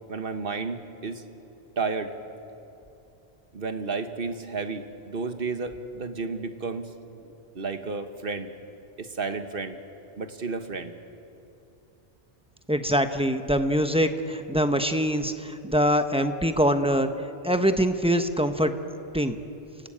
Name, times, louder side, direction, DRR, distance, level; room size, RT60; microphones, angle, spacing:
voice 1, 0.1-1.2 1.8-2.1 3.5-7.2 7.5-8.5 9.0-9.8 10.2-10.9, right 4 dB, 60° right, 8 dB, 1.5 m, -32 dB
voice 2, 12.7-17.1 17.4-18.7 19.1-19.4, equal, 5° right, 7 dB, 0.9 m, -23 dB
29.0 x 15.5 x 8.8 m, 2.8 s
omnidirectional pair, 1.1 m